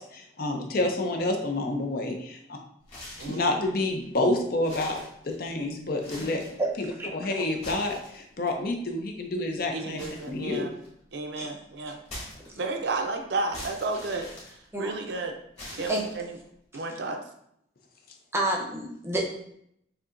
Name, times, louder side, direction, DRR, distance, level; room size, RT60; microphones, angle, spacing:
voice 1, 0.0-2.1 2.5-2.6 3.2-5.0 5.2-6.4 6.8-6.9 7.1-10.7, left 2 dB, 50° left, 3 dB, 0.5 m, -28 dB
sound 1, 2.8-3.5 4.0-4.1 4.6-5.6 5.9-6.6 7.4-8.5 10.0-11.0 12.1-12.9 13.5-15.1 15.6-16.5, left 1 dB, 35° left, 1.8 m, -43 dB
voice 2, 9.7-10.7 11.1-12.0 12.6-15.3 15.7-16.3 16.7-17.2, right 3 dB, 60° right, 4 dB, 0.5 m, -32 dB
voice 3, 18.3-19.3, right 1 dB, 15° right, -2 dB, 0.7 m, -28 dB
6.6 x 2.7 x 2.5 m, 0.73 s
head